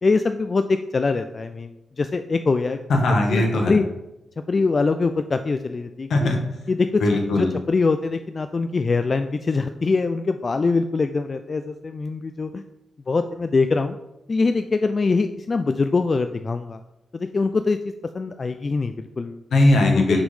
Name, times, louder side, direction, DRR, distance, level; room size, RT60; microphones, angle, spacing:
voice 1, 0.0-1.7 2.0-2.8 3.3-3.8 4.5-6.3 6.7-7.0 7.4-12.6 13.1-14.0 14.3-16.8 17.1-17.8 18.1-19.4 19.9-20.2, left 4 dB, 50° left, 8 dB, 0.3 m, -23 dB
voice 2, 2.9-3.8 6.1-6.4 7.0-7.5 19.5-20.2, left 2 dB, 80° left, 1 dB, 1.3 m, -19 dB
6.0 x 3.2 x 5.5 m, 0.92 s
supercardioid pair, 45°, 0 cm